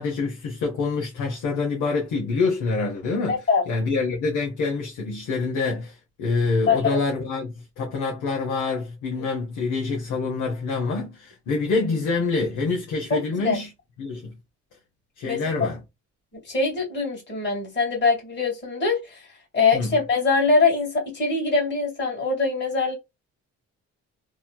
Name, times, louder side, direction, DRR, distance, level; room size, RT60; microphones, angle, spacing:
voice 1, 0.0-3.4 3.7-13.7 14.0-14.3 15.2-15.8 19.7-20.0, left 4 dB, 90° left, 1.1 m, -26 dB
voice 2, 3.3-3.6 6.7-7.0 9.2-9.3 13.1-13.6 15.3-15.4 16.4-19.3 19.5-23.0, left 4 dB, 35° left, 1.9 m, -23 dB
3.2 x 2.8 x 2.2 m
cardioid pair, 90°, 30 cm